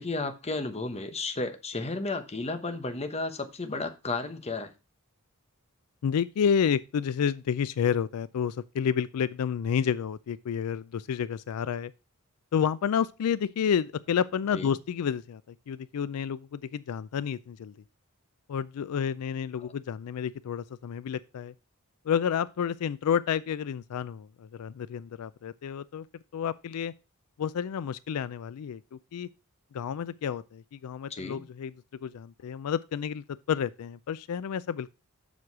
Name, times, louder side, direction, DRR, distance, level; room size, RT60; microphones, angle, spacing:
voice 1, 0.0-4.7 14.5-14.7 19.6-19.7 31.1-31.4, left 3 dB, 30° left, 1.0 m, -33 dB
voice 2, 6.0-11.9 12.5-15.4 15.7-17.7 18.5-21.5 22.0-26.1 26.3-26.9 27.4-29.3 29.7-31.7 32.0-34.9, left 7 dB, 80° left, 0.4 m, -30 dB
7.4 x 6.2 x 4.7 m
head